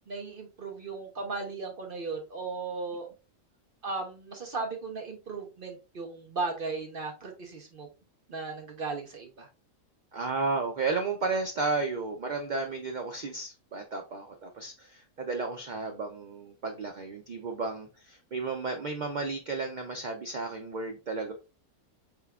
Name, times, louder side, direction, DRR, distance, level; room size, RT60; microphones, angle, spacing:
voice 1, 0.1-3.1 3.8-7.9 8.3-9.5, right 4 dB, 45° right, 3 dB, 0.8 m, -36 dB
voice 2, 10.1-21.3, right 3 dB, 80° right, 3 dB, 0.4 m, -33 dB
4.2 x 3.6 x 2.3 m, 0.30 s
omnidirectional pair, 1.5 m